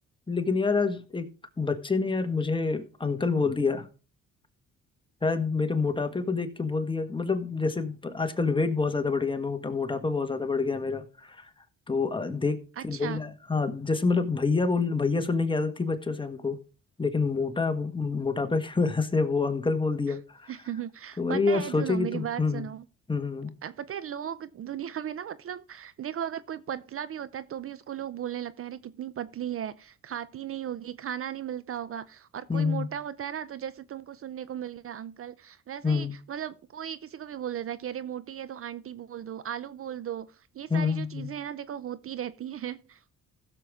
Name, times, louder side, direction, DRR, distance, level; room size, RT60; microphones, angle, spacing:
voice 1, 0.3-1.2 1.6-3.9 5.2-11.5 11.9-12.6 12.8-16.6 17.0-20.5 21.2-22.6 23.1-23.5 32.5-32.9 35.8-36.1 40.7-41.3, left 4 dB, 15° left, 1.4 m, -27 dB
voice 2, 12.8-13.2 20.1-20.2 20.5-22.9 23.6-43.0, right 10 dB, 45° right, 0.5 m, -36 dB
15.5 x 6.8 x 3.6 m
cardioid pair, 90°, 30 cm